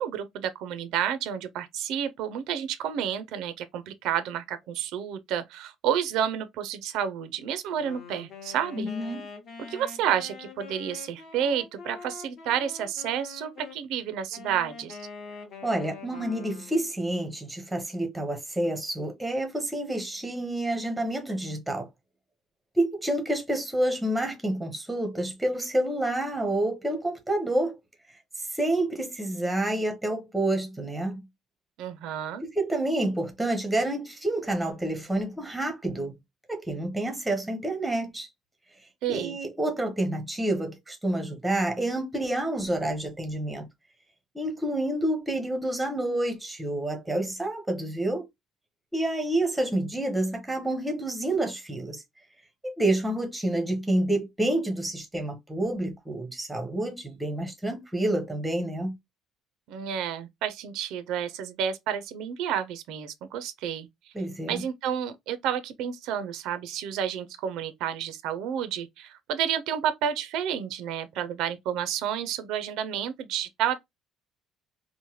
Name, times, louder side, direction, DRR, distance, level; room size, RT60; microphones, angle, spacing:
voice 1, 0.0-8.9 9.7-15.1 31.8-32.4 39.0-39.4 59.7-63.9 64.5-73.8, right 9 dB, 65° right, 0.4 m, -30 dB
Wind instrument woodwind instrument, 7.6-13.8 14.3-16.9, left 5 dB, 40° left, 0.8 m, -44 dB
voice 2, 8.8-9.2 15.6-21.9 22.8-27.8 28.5-31.2 32.5-36.1 36.5-38.3 39.1-43.7 44.3-48.2 48.9-52.0 52.6-59.0 64.1-64.6, right 1 dB, 5° right, 0.6 m, -28 dB
3.0 x 2.1 x 2.7 m
cardioid pair, 180°, 0 cm